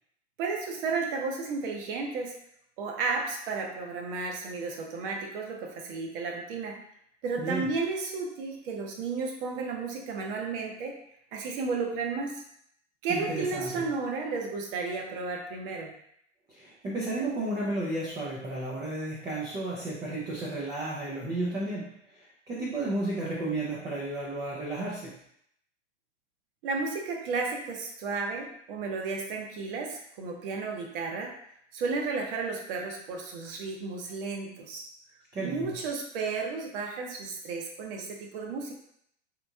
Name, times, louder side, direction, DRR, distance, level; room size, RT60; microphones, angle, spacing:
voice 1, 0.4-2.4 2.8-6.8 7.2-11.0 11.3-12.4 13.0-15.9 26.6-31.3 31.7-34.8 35.4-38.7, right 4 dB, 50° right, 1 dB, 0.9 m, -33 dB
voice 2, 7.4-7.7 13.1-13.9 16.5-25.2 35.3-35.8, right 2 dB, 10° right, -6 dB, 0.3 m, -33 dB
3.0 x 2.5 x 3.4 m, 0.71 s
hypercardioid pair, 120°, 36 cm